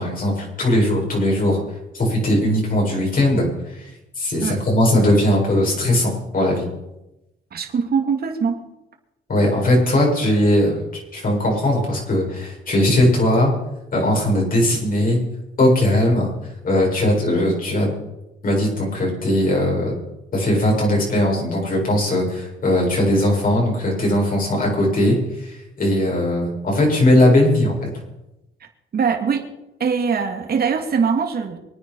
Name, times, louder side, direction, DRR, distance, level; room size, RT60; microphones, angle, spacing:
voice 1, 0.0-1.6 1.9-3.9 4.2-6.6 9.3-10.9 11.1-13.5 13.9-15.2 15.6-16.3 16.6-17.9 18.4-19.9 20.3-27.9, left 1 dB, 45° left, -2 dB, 7.7 m, -19 dB
voice 2, 7.5-8.6 28.9-29.5 29.8-31.6, right 6 dB, 50° right, 4 dB, 2.7 m, -22 dB
24.5 x 9.5 x 5.6 m, 0.92 s
cardioid pair, 90°, 20 cm